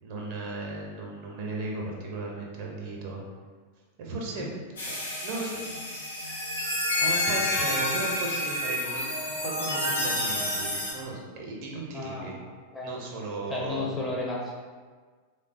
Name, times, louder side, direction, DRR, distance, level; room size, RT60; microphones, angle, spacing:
voice 1, 0.0-3.2 4.0-4.5 4.8-5.7 7.0-12.4 12.8-13.9, right 2 dB, 45° right, -1 dB, 0.5 m, -36 dB
sound 1, 4.8-10.9, left 1 dB, 70° left, 0.8 m, -29 dB
voice 2, 11.9-12.3 12.7-13.0 13.5-14.5, left 2 dB, 10° left, -3 dB, 0.5 m, -33 dB
3.3 x 2.0 x 2.4 m, 1.5 s
figure-of-eight pair, 90°, 0 cm